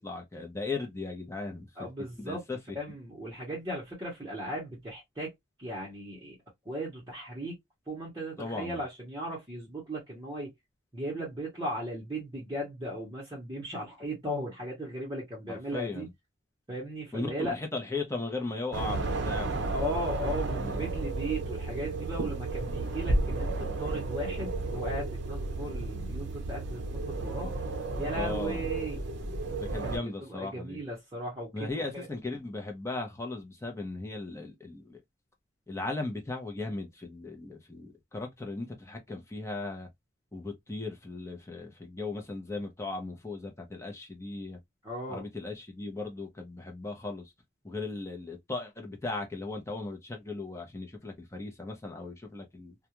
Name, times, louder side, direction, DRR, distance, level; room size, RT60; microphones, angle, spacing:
voice 1, 0.0-1.9 2.2-2.8 8.4-8.8 15.5-16.1 17.1-19.8 20.6-20.9 28.1-28.6 29.6-30.8 31.5-35.0 35.7-39.9 40.3-44.6 45.1-47.3 47.6-52.7, left 3 dB, 15° left, 0.7 m, -37 dB
voice 2, 1.8-2.4 2.7-5.3 5.6-6.4 6.6-7.6 7.9-10.5 10.9-16.1 16.7-17.6 19.7-27.5 28.0-29.0 29.8-32.1 44.8-45.2, right 1 dB, 20° right, 0.9 m, -37 dB
sound 1, 18.7-30.0, right 2 dB, 60° right, 0.6 m, -32 dB
2.4 x 2.3 x 2.9 m
head